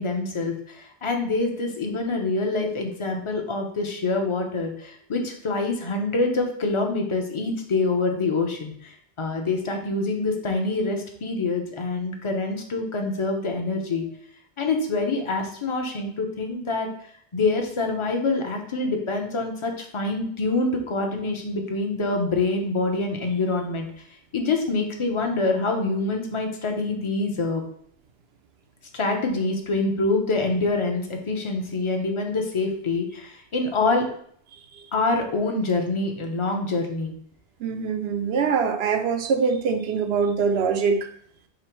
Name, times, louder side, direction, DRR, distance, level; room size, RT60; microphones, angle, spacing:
voice 1, 0.0-8.9 9.2-14.1 14.6-16.9 17.3-23.9 24.3-27.6 28.9-34.1 34.9-37.1, left 3 dB, 35° left, 3 dB, 0.6 m, -25 dB
voice 2, 37.6-41.0, right 5 dB, 80° right, 7 dB, 0.8 m, -23 dB
5.0 x 2.0 x 4.3 m, 0.62 s
omnidirectional pair, 1.0 m